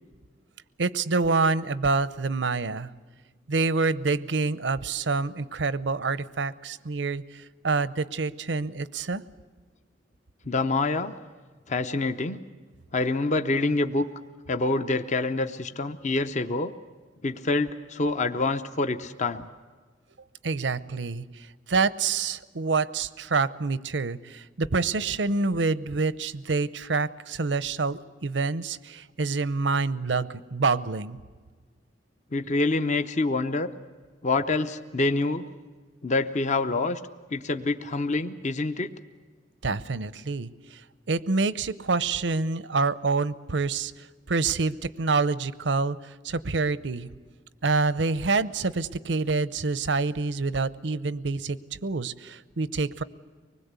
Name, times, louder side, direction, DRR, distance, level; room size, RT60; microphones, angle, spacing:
voice 1, 0.8-2.9 3.5-9.2 20.4-21.3 21.7-31.2 39.6-40.8 41.1-43.9 44.3-47.1 47.6-53.0, right 4 dB, 85° right, 16 dB, 0.7 m, -27 dB
voice 2, 10.5-11.1 11.7-12.4 12.9-14.1 14.5-16.7 17.2-19.5 32.3-33.7 34.2-35.4 36.0-37.0 37.3-38.9, left 3 dB, 40° left, 9 dB, 0.8 m, -26 dB
24.5 x 20.5 x 8.2 m, 1.5 s
head